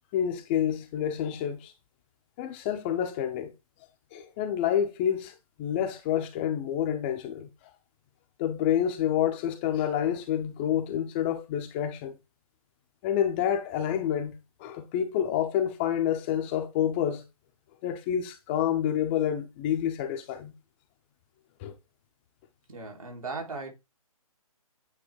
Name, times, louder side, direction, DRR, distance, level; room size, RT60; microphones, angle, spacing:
voice 1, 0.1-1.7 2.4-3.5 4.1-7.5 8.4-12.2 13.0-14.3 14.6-17.2 17.8-20.5 21.6-21.7, left 10 dB, 20° left, 0.7 m, -28 dB
voice 2, 22.7-23.7, right 3 dB, 75° right, 2.8 m, -37 dB
8.9 x 3.2 x 4.6 m
hypercardioid pair, 150°, 18 cm